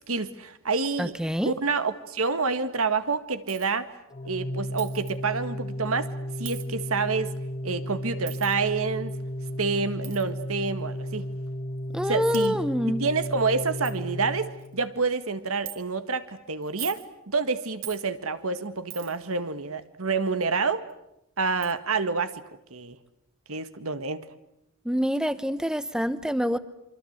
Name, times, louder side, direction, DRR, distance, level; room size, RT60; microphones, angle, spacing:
voice 1, 0.1-1.2 1.4-3.9 4.2-6.1 6.4-7.3 7.6-9.1 9.6-11.3 12.0-12.6 13.0-20.8 21.4-22.4 22.7-23.0 23.5-24.3, right 4 dB, 90° right, 11 dB, 1.8 m, -28 dB
voice 2, 1.0-1.5 11.9-13.0 24.8-26.6, equal, 5° right, 13 dB, 1.0 m, -26 dB
Coin (dropping), 3.5-3.7 4.8-5.1 6.4-6.7 8.3-8.6 10.0-10.2 11.2-11.3 12.0-12.1 12.3-12.5 13.1-13.2 13.5-13.6 13.8-14.0 14.4-14.7 15.7-15.8 16.6-17.1 17.8-18.0 18.9-19.3 20.9-21.0 21.6-21.7, right 14 dB, 60° right, 3.1 m, -40 dB
Organ, 4.1-15.0, equal, 30° left, 1.5 m, -34 dB
27.5 x 24.5 x 8.1 m, 0.84 s
head